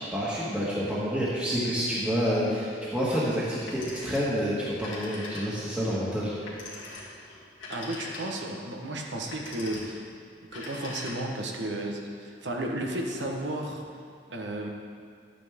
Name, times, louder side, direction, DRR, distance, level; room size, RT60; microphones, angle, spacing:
voice 1, 0.0-6.6, equal, 5° right, -9 dB, 1.7 m, -28 dB
Telephone, 3.7-4.4 4.7-5.8 6.5-8.6 9.2-10.0 10.4-11.5, left 2 dB, 90° left, 2.3 m, -42 dB
voice 2, 7.7-10.0 10.5-13.8 14.3-14.7, right 1 dB, 75° right, 1 dB, 1.3 m, -33 dB
12.0 x 9.1 x 3.7 m, 2.3 s
head